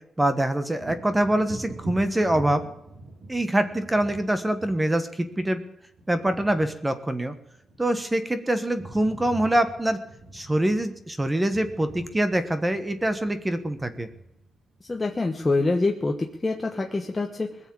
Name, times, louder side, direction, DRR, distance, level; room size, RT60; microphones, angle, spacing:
voice 1, 0.2-2.6 3.3-5.6 6.1-7.3 7.8-10.0 10.3-14.1, right 1 dB, 10° right, 10 dB, 1.3 m, -24 dB
Wind / Thunder, 0.8-8.3 8.6-15.8 16.3-16.4, right 2 dB, 80° right, 4.1 m, -44 dB
voice 2, 14.9-16.1 16.4-17.5, left 3 dB, 20° left, 2 dB, 1.2 m, -25 dB
21.0 x 7.3 x 8.6 m, 0.81 s
wide cardioid pair, 130°, 0 cm